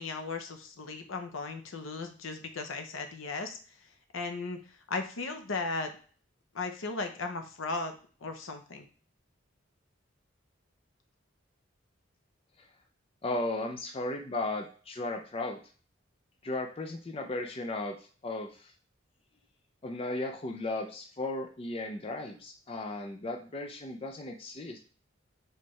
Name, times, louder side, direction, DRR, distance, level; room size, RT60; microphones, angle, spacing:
voice 1, 0.0-3.6 4.1-4.6 4.9-5.9 6.5-8.9, left 3 dB, 75° left, 6 dB, 0.7 m, -36 dB
voice 2, 13.2-15.6 16.4-18.0 18.2-18.7 19.8-24.8, left 2 dB, 25° left, 4 dB, 0.4 m, -35 dB
4.4 x 3.2 x 3.1 m, 0.41 s
head